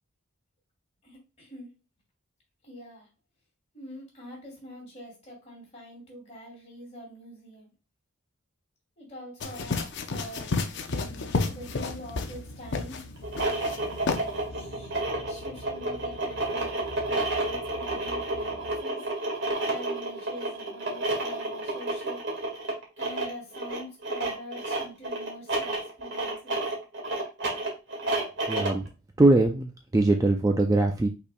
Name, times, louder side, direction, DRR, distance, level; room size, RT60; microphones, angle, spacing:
voice 1, 1.0-1.7 2.6-3.1 3.7-7.7 9.0-10.6 11.5-13.0 14.5-14.9 15.2-19.0 19.7-22.2 23.0-26.6, equal, 30° left, -3 dB, 2.6 m, -44 dB
sound 1, 9.4-12.4 12.7-13.0 13.4-13.8 14.1-14.2, left 3 dB, 55° left, 0.6 m, -30 dB
sound 2, 10.9-18.8, left 1 dB, 80° left, 0.8 m, -45 dB
sound 3, 13.2-28.9, right 2 dB, 55° right, 1.6 m, -30 dB
voice 2, 28.5-28.8 29.2-31.1, right 2 dB, 15° right, 4 dB, 0.3 m, -22 dB
5.6 x 4.3 x 2.2 m, 0.29 s
head